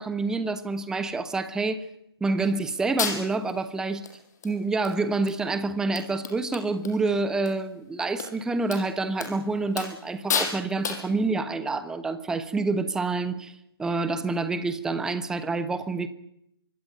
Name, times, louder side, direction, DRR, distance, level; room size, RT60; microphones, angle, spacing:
voice 1, 0.0-1.9 2.2-4.1 4.4-16.1, right 3 dB, 5° right, 1.2 m, -27 dB
sound 1, 2.4-2.5 3.0-3.5 4.1-4.2 4.4-5.0 5.3-5.4 5.7-5.8 6.0-7.0 7.2-7.5 8.2-8.3 8.7-8.8 9.2-9.4 9.8-10.0 10.3-10.6 10.8-11.1, left 6 dB, 45° left, 5.9 m, -30 dB
25.5 x 20.0 x 9.3 m
figure-of-eight pair, 135°, 13 cm